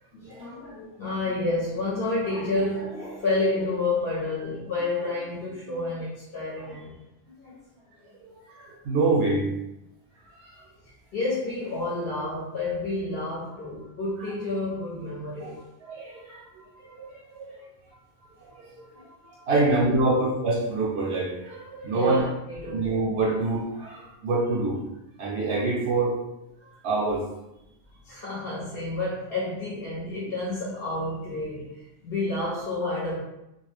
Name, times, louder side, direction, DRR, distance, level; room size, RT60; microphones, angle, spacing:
voice 1, 0.1-7.6 10.8-15.6 18.2-19.0 19.5-20.3 21.9-22.9 28.0-33.2, left 2 dB, 55° left, -7 dB, 0.9 m, -30 dB
voice 2, 8.2-9.5 10.3-10.6 15.4-15.5 15.9-16.4 17.0-17.6 18.6-18.8 19.5-22.2 22.7-24.8 25.2-26.2 26.6-27.3, right 3 dB, 70° right, -3 dB, 0.8 m, -26 dB
2.3 x 2.1 x 3.2 m, 0.89 s
omnidirectional pair, 1.2 m